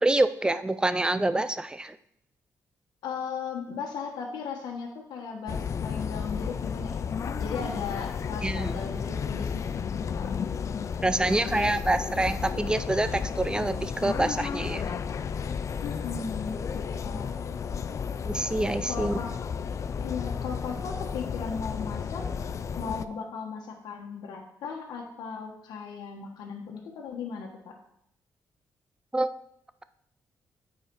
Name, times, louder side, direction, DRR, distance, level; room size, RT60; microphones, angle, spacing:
voice 1, 0.0-2.0 8.4-8.7 11.0-14.8 17.1-17.2 18.3-19.2 29.1-29.3, right 2 dB, 10° right, 13 dB, 0.5 m, -26 dB
voice 2, 3.0-7.1 7.3-10.3 11.1-11.8 15.8-17.3 18.8-19.3 20.0-22.2 22.8-27.7, left 5 dB, 90° left, 1 dB, 1.2 m, -37 dB
sound 1, 5.5-23.0, left 6 dB, 45° left, 0.4 m, -33 dB
8.7 x 4.9 x 4.6 m, 0.74 s
cardioid pair, 95°, 7 cm